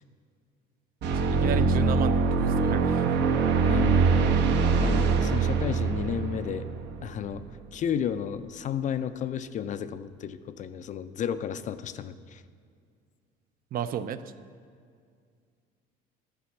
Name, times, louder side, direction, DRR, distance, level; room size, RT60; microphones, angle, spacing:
sound 1, 1.0-7.7, right 4 dB, 60° right, 0.9 m, -24 dB
voice 1, 1.1-3.6 13.7-14.3, right 8 dB, 45° right, 12 dB, 0.4 m, -33 dB
voice 2, 3.7-4.0 4.8-6.7 7.0-7.4 7.7-12.4, left 8 dB, 40° left, 12 dB, 0.4 m, -32 dB
11.5 x 5.0 x 7.1 m, 2.2 s
cardioid pair, 135°, 20 cm